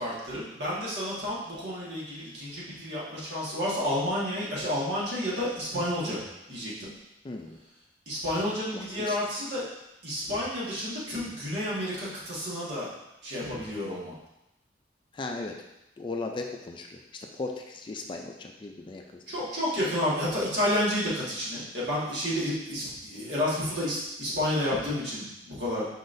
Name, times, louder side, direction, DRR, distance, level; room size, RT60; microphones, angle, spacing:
voice 1, 0.0-6.2 6.5-6.9 8.1-9.6 10.0-12.9 13.2-14.1 19.3-25.9, left 1 dB, 65° right, -7 dB, 1.6 m, -30 dB
voice 2, 7.2-7.6 8.4-9.2 15.1-15.6 16.0-17.0 17.3-19.2 23.2-23.3, left 3 dB, 25° left, 2 dB, 0.3 m, -37 dB
5.1 x 3.9 x 2.6 m, 0.90 s
head